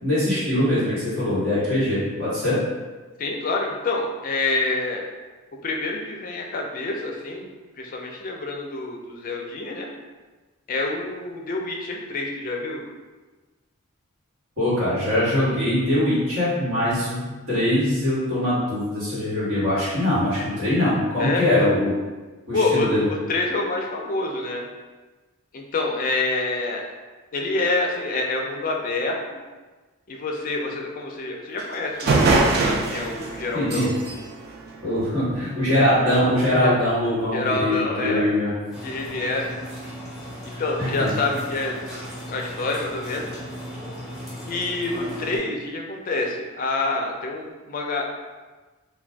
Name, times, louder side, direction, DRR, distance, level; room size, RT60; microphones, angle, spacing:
voice 1, 0.0-2.6 14.6-17.2 17.5-21.9 22.5-23.1 33.5-33.9 34.8-38.5 40.5-41.1, left 1 dB, 65° right, -11 dB, 1.4 m, -22 dB
voice 2, 3.2-5.0 5.6-7.5 7.8-9.9 10.7-12.8 21.2-21.7 22.5-24.7 25.5-26.9 27.3-29.2 30.1-33.9 36.6-36.9 37.3-38.3 38.8-39.5 40.6-41.8 42.3-43.3 44.4-48.0, left 3 dB, 40° left, 1 dB, 0.4 m, -27 dB
sound 1, 31.6-31.7 32.0-35.5, right 3 dB, 45° right, 0.3 m, -23 dB
sound 2, 38.7-45.4, equal, ahead, 0.6 m, -36 dB
2.5 x 2.2 x 3.3 m, 1.3 s
head